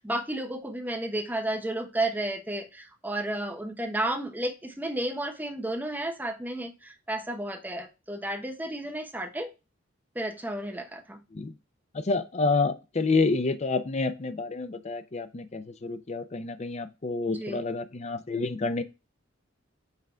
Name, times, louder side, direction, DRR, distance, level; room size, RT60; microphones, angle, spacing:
voice 1, 0.0-9.5 10.1-11.2 17.3-17.6, right 1 dB, 10° right, 4 dB, 0.9 m, -32 dB
voice 2, 11.9-18.8, left 3 dB, 35° left, 10 dB, 0.6 m, -28 dB
5.8 x 3.7 x 4.3 m, 0.28 s
head